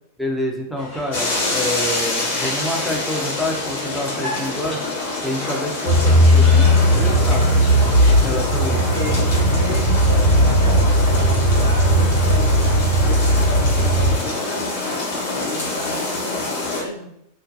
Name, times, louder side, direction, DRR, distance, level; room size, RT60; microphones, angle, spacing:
voice 1, 0.2-4.8 5.2-7.6 8.2-8.8, left 1 dB, 5° left, -1 dB, 0.5 m, -27 dB
sound 1, 0.8-8.2, left 2 dB, 30° left, 1.0 m, -36 dB
sound 2, 1.1-16.8, left 2 dB, 55° left, 1.0 m, -26 dB
sound 3, 5.9-14.1, equal, 80° right, 0.9 m, -16 dB
voice 2, 8.7-12.5 12.9-14.7 15.4-17.1, equal, 80° left, -3 dB, 0.7 m, -33 dB
2.5 x 2.1 x 2.5 m, 0.77 s
figure-of-eight pair, 90°, 0 cm